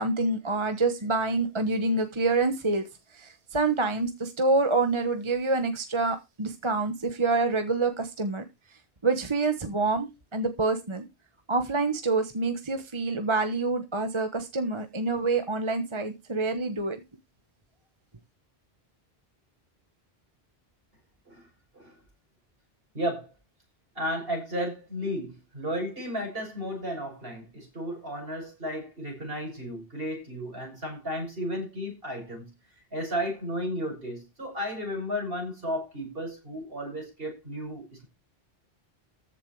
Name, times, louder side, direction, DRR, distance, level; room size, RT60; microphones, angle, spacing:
voice 1, 0.0-2.9 3.1-8.4 9.0-11.1 11.5-17.0, right 3 dB, 30° right, 1.3 m, -27 dB
voice 2, 22.9-23.3 24.0-32.5 32.9-38.1, equal, 65° right, 7.0 m, -33 dB
14.5 x 7.4 x 4.8 m
omnidirectional pair, 1.0 m